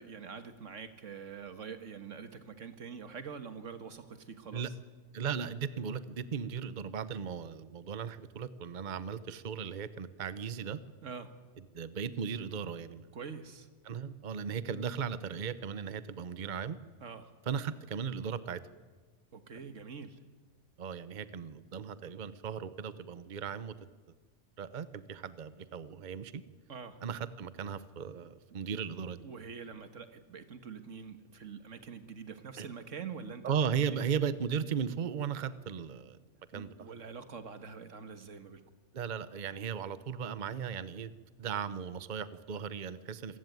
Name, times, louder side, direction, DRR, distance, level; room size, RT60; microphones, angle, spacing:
voice 1, 0.0-4.7 11.0-11.3 13.1-13.7 17.0-17.3 19.3-20.2 26.7-27.0 28.7-28.8 29.2-33.5 33.9-34.0 36.5-38.6, right 6 dB, 90° right, 9 dB, 1.9 m, -45 dB
voice 2, 5.1-10.8 11.7-13.1 13.8-16.8 17.5-18.6 20.8-23.7 24.6-26.4 27.0-29.3 32.6-32.7 33.4-36.2 36.5-36.7 38.9-41.1 41.4-43.4, right 7 dB, 45° right, 14 dB, 0.9 m, -36 dB
26.5 x 15.0 x 9.4 m, 1.4 s
omnidirectional pair, 1.2 m